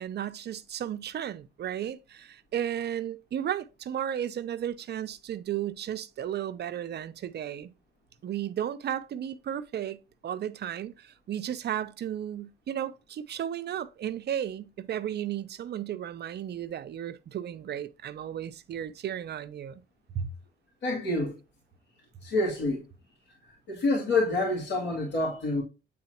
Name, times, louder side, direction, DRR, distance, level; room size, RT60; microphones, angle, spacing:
voice 1, 0.0-7.7 8.2-10.0 10.2-19.8 20.1-20.3, right 10 dB, 55° right, 0.6 m, -34 dB
voice 2, 20.8-21.4 22.2-22.8 23.4-25.6, left 2 dB, 70° left, 2.7 m, -27 dB
8.6 x 3.9 x 2.9 m
cardioid pair, 90°, 20 cm